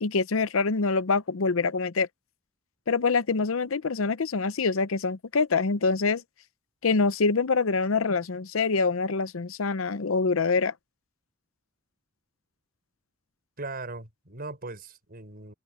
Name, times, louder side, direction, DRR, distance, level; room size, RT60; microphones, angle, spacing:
voice 1, 0.0-2.1 2.9-6.2 6.8-10.7, left 4 dB, 75° left, 0.7 m, -25 dB
voice 2, 13.6-15.5, right 2 dB, 45° right, 5.8 m, -39 dB
head